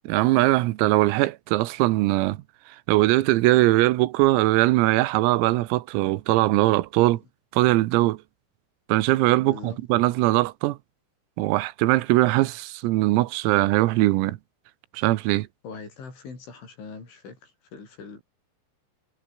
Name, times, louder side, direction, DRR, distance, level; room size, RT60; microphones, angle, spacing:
voice 1, 0.1-2.4 2.9-7.2 7.5-8.2 8.9-10.8 11.4-14.4 14.9-15.5, right 18 dB, 90° right, 3.8 m, -21 dB
voice 2, 9.5-9.8 15.6-18.2, left 5 dB, 65° left, 10.0 m, -41 dB
omnidirectional pair, 6.0 m